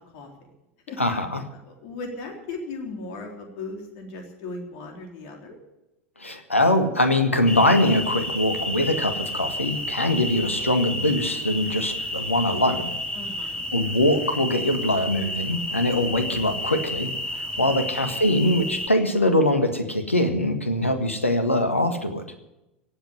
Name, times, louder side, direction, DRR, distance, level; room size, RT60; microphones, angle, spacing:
voice 1, 1.0-1.4 6.2-12.9 13.7-17.1 17.6-22.2, left 1 dB, 85° left, 8 dB, 1.6 m, -22 dB
voice 2, 1.5-5.6 13.1-13.7, left 3 dB, 50° left, 2 dB, 3.6 m, -37 dB
sound 1, 7.5-18.9, left 1 dB, 15° left, 2.6 m, -31 dB
17.5 x 8.0 x 9.8 m, 0.94 s
figure-of-eight pair, 85°, 7 cm